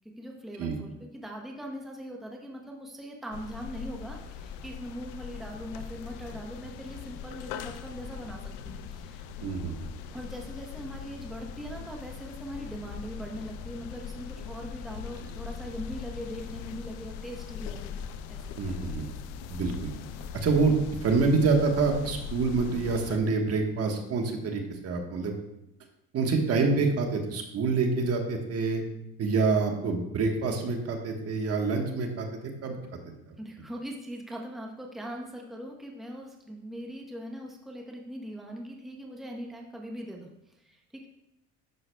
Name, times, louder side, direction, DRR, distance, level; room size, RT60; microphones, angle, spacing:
voice 1, 0.2-9.3 10.1-17.9 18.3-18.4 33.4-41.1, equal, ahead, 0 dB, 0.9 m, -41 dB
sound 1, 3.3-23.2, left 7 dB, 90° left, 0.6 m, -40 dB
voice 2, 9.4-9.7 18.6-19.1 19.5-19.7 20.3-20.7 21.0-25.3 26.1-28.8 29.2-32.8, right 4 dB, 50° right, 3 dB, 1.2 m, -26 dB
11.0 x 6.5 x 2.2 m, 0.85 s
cardioid pair, 115°, 31 cm